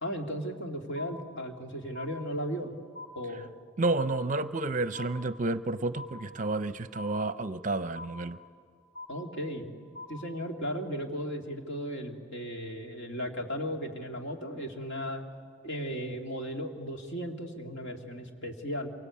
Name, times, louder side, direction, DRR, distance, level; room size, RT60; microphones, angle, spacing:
voice 1, 0.0-2.7 3.1-3.5 9.1-9.7 10.1-15.2 15.6-18.9, equal, 60° left, 2 dB, 2.6 m, -36 dB
sound 1, 1.0-1.7 2.0-2.7 3.0-3.7 4.0-4.7 5.0-5.7 6.0-6.7 7.0-7.7 8.0-8.7 9.0-9.7 10.0-10.7, left 2 dB, 30° left, 3.3 m, -46 dB
voice 2, 3.8-8.4, right 2 dB, 40° right, 12 dB, 0.6 m, -30 dB
27.0 x 24.0 x 8.5 m, 2.1 s
head